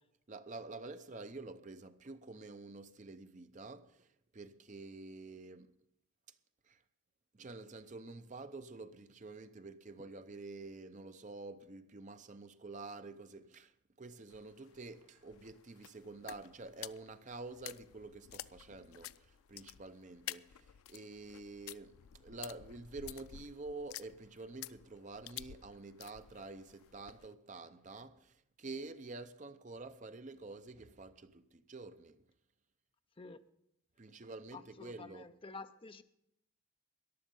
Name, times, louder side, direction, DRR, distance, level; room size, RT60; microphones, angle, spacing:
voice 1, 0.3-5.7 6.7-6.8 7.3-32.3 34.0-35.3, right 3 dB, 35° right, 0.6 m, -48 dB
sound 1, 14.3-27.3, left 13 dB, 90° left, 0.4 m, -51 dB
voice 2, 34.5-36.0, left 3 dB, 25° left, 0.6 m, -50 dB
14.5 x 10.5 x 5.4 m
head